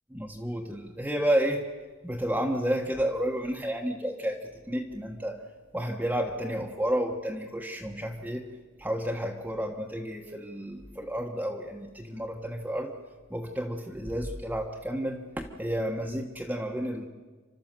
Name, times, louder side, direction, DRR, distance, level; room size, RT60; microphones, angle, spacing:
voice 1, 0.1-1.7 2.0-5.4 5.7-8.5 8.8-13.0 13.3-17.1, equal, 10° right, 0 dB, 1.2 m, -31 dB
29.5 x 13.0 x 7.6 m, 1.3 s
head